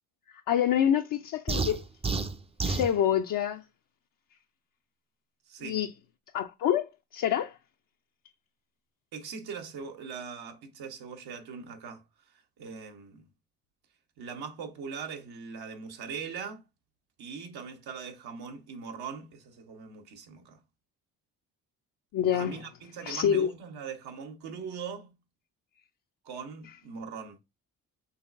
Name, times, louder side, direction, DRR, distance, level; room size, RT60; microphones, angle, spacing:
voice 1, 0.5-1.8 2.6-3.6 5.6-5.9 6.3-7.5 22.1-22.6 23.1-23.5, left 9 dB, 60° left, 0.5 m, -26 dB
sound 1, 1.5-2.9, right 3 dB, 15° right, 0.4 m, -30 dB
voice 2, 5.5-5.8 9.1-12.0 12.6-13.2 14.2-16.6 17.2-20.6 22.3-25.1 26.2-27.4, right 6 dB, 80° right, 1.1 m, -41 dB
5.5 x 3.2 x 2.5 m
cardioid pair, 75°, 38 cm